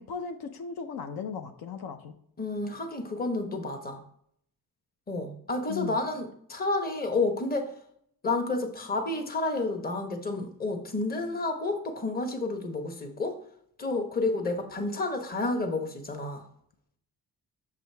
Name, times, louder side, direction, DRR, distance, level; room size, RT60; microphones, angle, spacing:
voice 1, 0.0-2.2 5.7-6.0, left 6 dB, 75° left, 6 dB, 0.7 m, -37 dB
voice 2, 2.4-4.0 5.1-7.7 8.2-13.4 13.8-16.4, left 2 dB, 25° left, 5 dB, 1.0 m, -30 dB
6.7 x 5.0 x 3.4 m, 0.69 s
cardioid pair, 115°, 37 cm